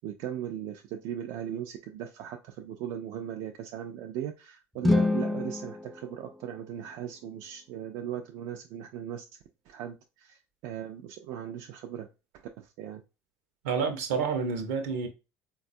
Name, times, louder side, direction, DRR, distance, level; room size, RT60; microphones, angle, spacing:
voice 1, 0.0-9.2 9.7-12.1 12.3-13.0, right 10 dB, 70° right, 0.4 m, -38 dB
sound 1, 4.8-7.0, left 2 dB, ahead, 0.4 m, -28 dB
voice 2, 13.6-15.1, right 5 dB, 90° right, 0.8 m, -29 dB
3.9 x 2.3 x 2.6 m
supercardioid pair, 85°, 7 cm